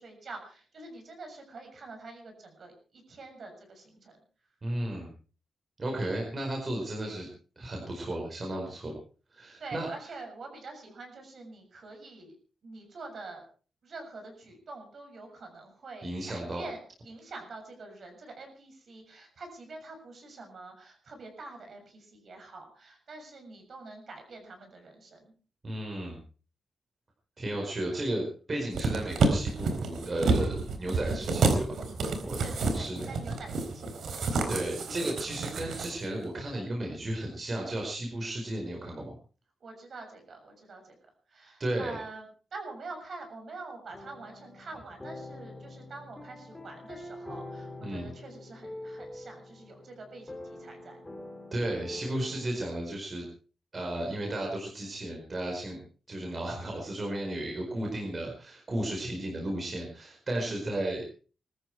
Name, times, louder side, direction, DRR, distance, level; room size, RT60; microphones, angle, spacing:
voice 1, 0.0-4.2 9.6-12.3 12.6-13.4 13.8-16.8 17.0-25.3 32.4-33.9 39.6-41.0 41.3-42.3 42.5-51.0 60.4-60.6, right 3 dB, 50° right, 5 dB, 6.8 m, -45 dB
voice 2, 4.6-5.1 5.8-7.3 7.6-8.9 9.3-10.1 16.0-16.6 25.6-26.2 27.4-31.8 32.2-32.4 32.7-33.1 34.5-39.1 41.6-42.0 47.8-48.1 51.5-53.2 53.7-55.8 56.1-61.1, right 1 dB, 30° right, 0 dB, 4.7 m, -34 dB
sound 1, 28.7-35.9 36.2-36.3, right 3 dB, 75° right, 4.1 m, -29 dB
sound 2, 43.9-52.5, left 1 dB, 10° left, 3.2 m, -45 dB
21.5 x 13.5 x 4.7 m, 0.40 s
wide cardioid pair, 165°, 0 cm